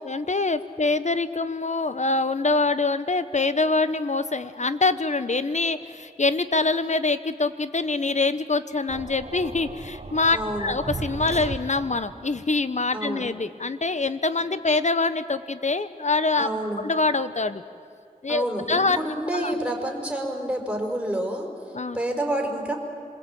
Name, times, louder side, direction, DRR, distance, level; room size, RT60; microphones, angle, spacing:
voice 1, 0.0-16.5 16.8-17.6 18.2-19.0 19.3-19.5 21.7-22.0, left 3 dB, 50° left, 13 dB, 1.2 m, -25 dB
sound 1, 8.9-12.2, right 3 dB, 45° right, 1.3 m, -36 dB
voice 2, 10.3-10.7 12.9-13.3 16.4-16.8 18.3-22.7, right 1 dB, 5° right, 1 dB, 5.4 m, -29 dB
27.0 x 21.0 x 8.9 m, 2.3 s
wide cardioid pair, 50°, 15 cm